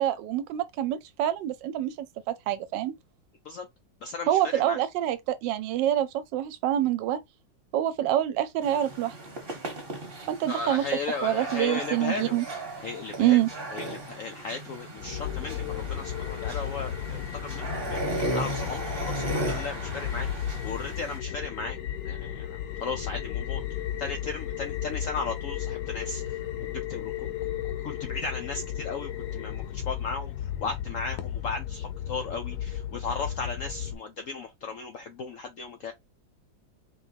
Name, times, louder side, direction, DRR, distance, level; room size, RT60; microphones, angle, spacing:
voice 1, 0.0-2.9 4.3-7.2 7.7-9.1 10.3-10.8 11.2-12.4 13.2-13.5, right 12 dB, 75° right, 1.3 m, -26 dB
voice 2, 4.0-4.8 10.5-12.4 12.8-13.4 13.7-21.8 22.0-23.6 24.0-27.3 27.8-35.9, left 4 dB, 85° left, 0.7 m, -36 dB
sound 1, 8.6-21.2, right 2 dB, 35° right, 1.2 m, -36 dB
sound 2, 15.0-33.9, left 10 dB, 70° left, 1.1 m, -34 dB
4.4 x 3.1 x 2.8 m
omnidirectional pair, 2.1 m